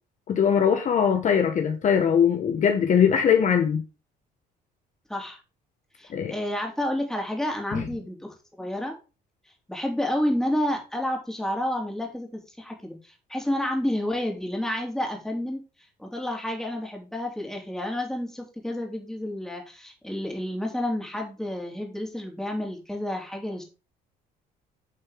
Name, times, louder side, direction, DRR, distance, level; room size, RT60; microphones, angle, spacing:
voice 1, 0.3-3.8 6.1-6.3 7.7-7.9, left 7 dB, 50° left, 1.5 m, -21 dB
voice 2, 6.0-8.9 9.7-15.6 16.0-23.6, left 1 dB, 5° left, 3.1 m, -30 dB
9.9 x 5.4 x 3.6 m
cardioid pair, 110°, 17 cm